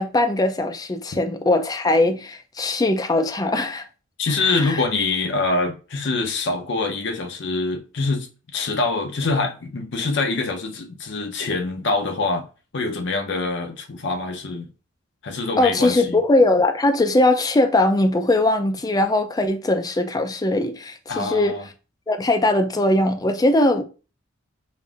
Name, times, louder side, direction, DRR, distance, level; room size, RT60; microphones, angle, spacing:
voice 1, 0.0-3.8 4.4-4.8 15.6-21.6 22.1-23.8, left 2 dB, 20° left, 0.3 m, -20 dB
voice 2, 4.2-8.3 8.5-12.4 12.7-14.7 15.2-16.2 21.1-21.7, left 3 dB, 55° left, 0.6 m, -25 dB
5.2 x 2.5 x 2.4 m
head